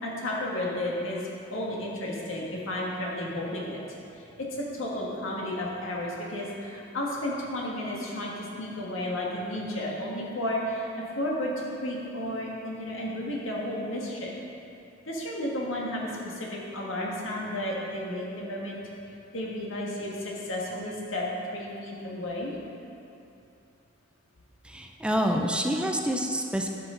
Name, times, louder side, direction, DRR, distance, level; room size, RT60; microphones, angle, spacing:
voice 1, 0.0-3.8 4.2-10.9 11.1-14.4 15.0-18.8 19.3-21.3 21.5-22.5, left 1 dB, 90° left, -3 dB, 1.6 m, -32 dB
voice 2, 24.6-26.7, equal, 5° right, 2 dB, 0.4 m, -27 dB
11.5 x 6.1 x 3.8 m, 2.7 s
head